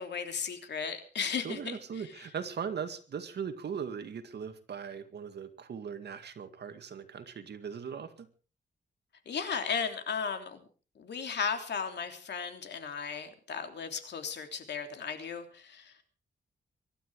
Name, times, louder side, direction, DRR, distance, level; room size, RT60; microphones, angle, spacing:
voice 1, 0.0-1.8 9.2-10.6 11.0-15.9, left 6 dB, 70° left, 6 dB, 3.2 m, -35 dB
voice 2, 1.4-8.3, right 7 dB, 65° right, 8 dB, 2.2 m, -39 dB
24.0 x 12.5 x 4.9 m, 0.38 s
wide cardioid pair, 145°, 18 cm